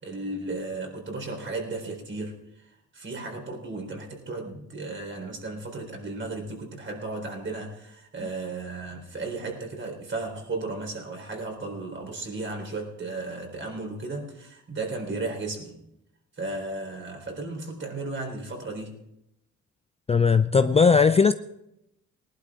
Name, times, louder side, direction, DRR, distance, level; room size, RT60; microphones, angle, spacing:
voice 1, 0.0-15.8 16.4-18.9, right 2 dB, 40° right, 4.1 m, -35 dB
voice 2, 20.1-21.3, left 5 dB, 20° left, 0.4 m, -18 dB
19.0 x 11.5 x 3.7 m
cardioid pair, 90°, 30 cm